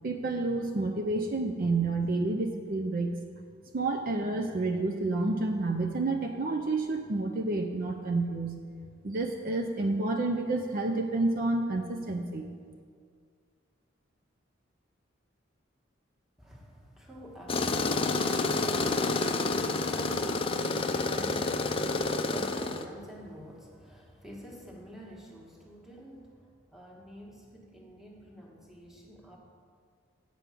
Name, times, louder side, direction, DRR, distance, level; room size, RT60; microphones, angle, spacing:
voice 1, 0.0-3.1 3.7-8.6 9.0-12.5, right 2 dB, 45° right, 3 dB, 0.5 m, -29 dB
voice 2, 16.4-29.4, equal, ahead, -2 dB, 1.3 m, -47 dB
Tools, 17.5-22.8, left 3 dB, 25° left, 0.4 m, -29 dB
8.2 x 5.2 x 7.6 m, 2.1 s
head